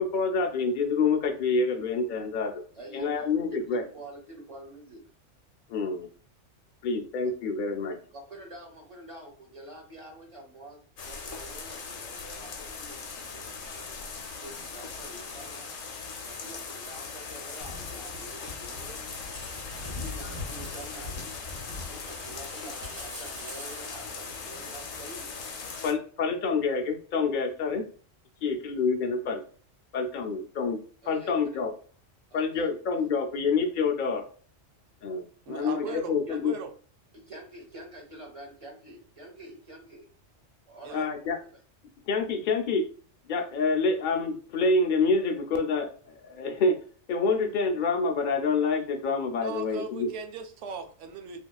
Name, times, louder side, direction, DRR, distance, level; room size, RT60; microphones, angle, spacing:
voice 1, 0.0-2.6 2.9-3.8 5.7-6.1 6.8-8.0 25.8-27.8 28.4-29.4 29.9-30.8 31.1-31.7 32.3-34.2 35.0-36.5 40.9-41.4 42.1-42.8 43.2-46.8 47.1-50.1, left 4 dB, 60° left, 3 dB, 0.5 m, -27 dB
voice 2, 2.7-5.0 8.1-13.9 14.3-15.7 16.3-19.1 19.8-25.3 31.0-31.4 32.3-32.7 34.8-34.9 35.6-36.4 37.1-40.1 40.7-41.5, right 1 dB, 35° right, 0 dB, 0.6 m, -47 dB
sound 1, 11.0-25.9, left 5 dB, 85° left, 1.1 m, -40 dB
sound 2, 17.6-25.0, left 2 dB, 90° right, 1.5 m, -43 dB
voice 3, 35.5-36.7 40.8-41.1 49.4-51.4, right 5 dB, 70° right, 6 dB, 0.9 m, -39 dB
2.9 x 2.7 x 2.2 m, 0.42 s
omnidirectional pair, 1.3 m